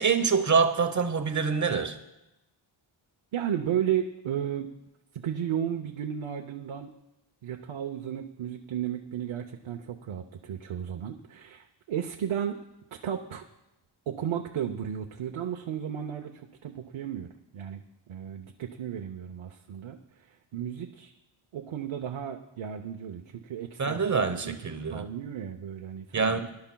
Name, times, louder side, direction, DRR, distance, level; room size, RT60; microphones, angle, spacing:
voice 1, 0.0-2.0 23.8-25.1 26.1-26.5, right 5 dB, 35° right, 8 dB, 1.0 m, -25 dB
voice 2, 3.3-4.7 5.1-6.9 7.4-12.6 13.0-13.4 14.1-17.8 18.1-20.0 20.5-21.1 21.5-24.6 24.9-26.5, right 9 dB, 80° right, 3 dB, 0.9 m, -34 dB
23.0 x 11.5 x 2.3 m, 0.94 s
wide cardioid pair, 130°, 49 cm